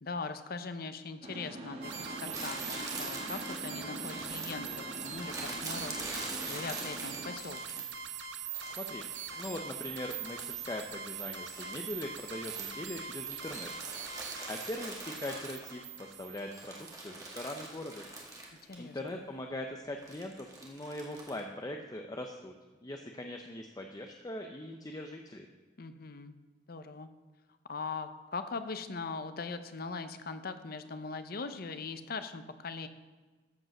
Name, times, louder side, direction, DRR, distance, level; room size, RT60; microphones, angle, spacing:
voice 1, 0.0-7.9 18.7-19.2 25.8-26.4 26.7-27.1 27.7-32.9, left 4 dB, 55° left, 10 dB, 0.7 m, -41 dB
sound 1, 1.2-7.3, right 1 dB, 35° right, 1.5 m, -44 dB
sound 2, 1.8-17.7, right 7 dB, 90° right, 1.0 m, -42 dB
Crumpling crinkling, 2.3-8.1 8.5-10.7 11.0-16.0 16.4-18.8 19.1-19.2 20.0-21.4, right 2 dB, 20° right, 1.9 m, -44 dB
voice 2, 8.8-13.7 14.1-18.1 18.8-22.5 22.8-25.5, left 1 dB, 20° left, 3 dB, 0.7 m, -41 dB
13.5 x 5.3 x 6.5 m, 1.3 s
head